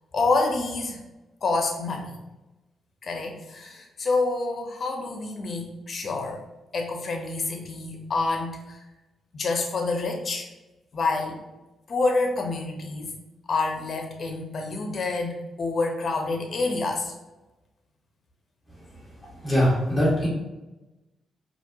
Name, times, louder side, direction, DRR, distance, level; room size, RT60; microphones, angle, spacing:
voice 1, 0.1-1.0 1.4-2.2 3.0-6.4 6.7-8.8 9.3-10.5 10.9-11.4 11.9-13.1 13.5-17.1, left 3 dB, 50° left, 2 dB, 0.8 m, -27 dB
voice 2, 19.4-20.3, equal, ahead, -8 dB, 1.4 m, -21 dB
4.5 x 2.8 x 2.8 m, 1.0 s
cardioid pair, 95°, 0 cm